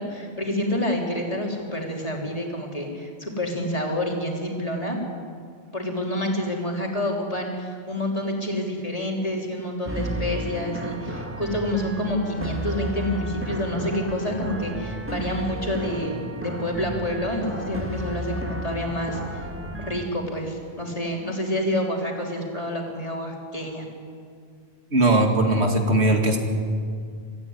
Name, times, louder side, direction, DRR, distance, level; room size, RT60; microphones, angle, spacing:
voice 1, 0.0-5.0 5.7-19.4 19.8-23.9, left 1 dB, 35° left, 0 dB, 3.7 m, -28 dB
sound 1, 9.9-20.1, equal, 10° right, 1.7 m, -33 dB
voice 2, 24.9-26.4, right 2 dB, 80° right, 3 dB, 2.7 m, -19 dB
24.5 x 14.0 x 9.6 m, 2.2 s
omnidirectional pair, 1.1 m